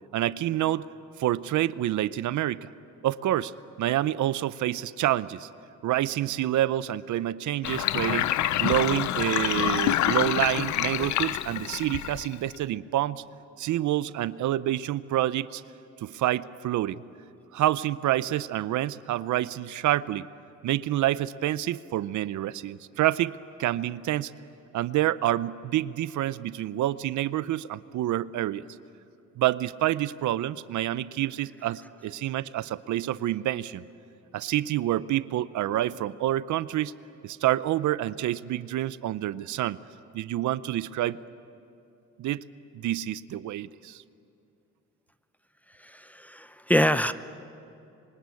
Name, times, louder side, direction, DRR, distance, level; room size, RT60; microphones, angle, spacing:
voice 1, 0.1-0.9 1.2-2.7 3.0-5.5 5.8-8.3 8.6-13.2 13.6-15.6 16.0-17.0 17.5-20.3 20.6-23.3 23.6-24.3 24.7-28.7 29.4-33.9 34.3-36.9 37.2-39.8 40.1-41.2 42.2-42.4 42.7-44.0, right 13 dB, 75° right, 16 dB, 0.7 m, -27 dB
Sink (filling or washing), 7.6-12.6, left 13 dB, 70° left, 0.6 m, -27 dB
voice 2, 45.8-47.1, equal, 5° left, 13 dB, 0.8 m, -25 dB
26.0 x 24.0 x 8.5 m, 2.6 s
cardioid pair, 90°, 30 cm